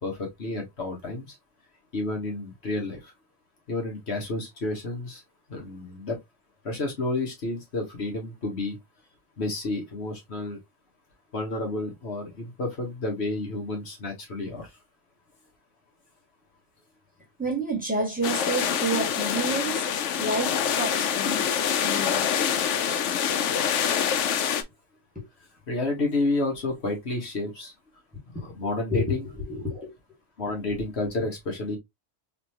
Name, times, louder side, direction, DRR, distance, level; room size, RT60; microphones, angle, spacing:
voice 1, 0.0-1.3 1.9-3.1 3.7-5.2 5.5-6.2 6.6-8.8 9.4-10.6 11.3-14.7 25.7-27.7 28.3-29.3 30.4-31.8, left 2 dB, 65° left, 1.6 m, -30 dB
voice 2, 17.4-19.8 20.2-21.5 21.8-22.3 25.1-25.2 28.3-28.4 28.9-29.1 29.5-29.9, right 1 dB, 5° right, 1.8 m, -29 dB
sound 1, 18.2-24.6, left 8 dB, 85° left, 1.0 m, -25 dB
4.0 x 3.1 x 2.8 m
omnidirectional pair, 1.2 m